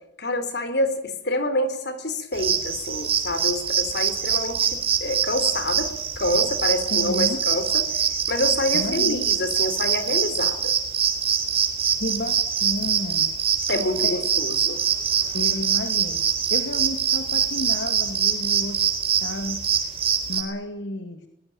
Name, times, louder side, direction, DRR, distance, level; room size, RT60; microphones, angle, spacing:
voice 1, 0.2-7.8 8.3-10.7 13.7-14.8, left 1 dB, 65° left, 10 dB, 4.0 m, -27 dB
sound 1, 2.3-20.4, right 7 dB, 35° right, 4.0 m, -24 dB
voice 2, 6.9-7.4 8.7-9.2 12.0-13.3 14.0-14.3 15.3-16.2 16.5-18.8 19.2-19.9 20.3-21.2, left 1 dB, 85° left, 6 dB, 2.5 m, -31 dB
23.0 x 20.0 x 8.8 m, 0.80 s
head